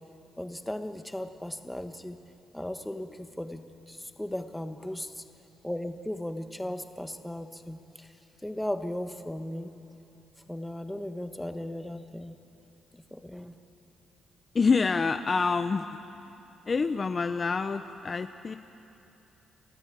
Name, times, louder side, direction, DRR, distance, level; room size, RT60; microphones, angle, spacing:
voice 1, 0.4-2.2 2.5-5.2 5.6-8.1 8.4-9.7 10.5-12.4 13.1-13.6, left 1 dB, 5° left, 7 dB, 1.4 m, -36 dB
voice 2, 14.5-16.0 16.7-18.6, left 4 dB, 35° left, 9 dB, 0.7 m, -27 dB
30.0 x 13.5 x 8.7 m, 2.9 s
cardioid pair, 90°, 0 cm